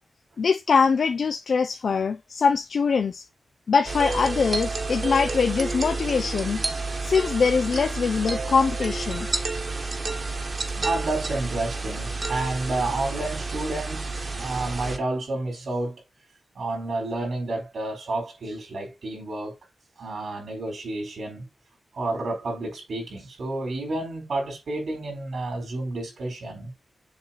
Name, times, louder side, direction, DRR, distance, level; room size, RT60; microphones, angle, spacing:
voice 1, 0.4-3.2 3.7-6.6 7.0-9.3, left 5 dB, 75° left, 0.5 m, -23 dB
sound 1, 3.9-15.0, right 3 dB, 45° right, 1.2 m, -30 dB
voice 2, 10.8-16.0 16.5-19.6 20.0-21.5 21.9-26.7, right 2 dB, 85° right, 4.1 m, -30 dB
7.2 x 3.1 x 5.7 m
wide cardioid pair, 115°, 0 cm